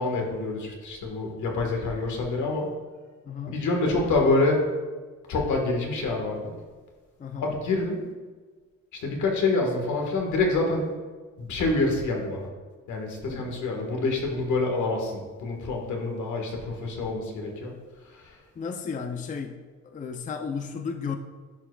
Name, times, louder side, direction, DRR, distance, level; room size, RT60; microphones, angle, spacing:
voice 1, 0.0-2.7 3.5-4.6 5.3-6.5 7.4-8.0 9.0-10.9 11.4-12.5 12.9-17.7 18.1-18.4, left 2 dB, 75° left, 1 dB, 1.5 m, -26 dB
voice 2, 3.3-3.6 7.2-7.6 13.3-13.5 18.6-21.2, left 5 dB, 25° left, 7 dB, 0.4 m, -34 dB
11.0 x 4.7 x 2.3 m, 1.4 s
cardioid pair, 90°, 30 cm